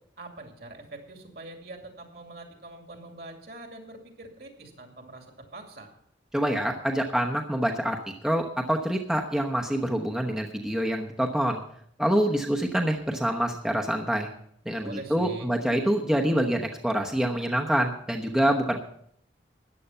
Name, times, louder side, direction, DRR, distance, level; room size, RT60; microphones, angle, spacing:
voice 1, 0.2-5.9 14.8-15.5, right 2 dB, 55° right, 3 dB, 2.6 m, -43 dB
voice 2, 6.3-8.0 8.2-11.6 12.0-14.3 14.7-18.8, right 1 dB, 5° right, 1 dB, 0.9 m, -26 dB
14.0 x 10.0 x 5.6 m, 0.67 s
head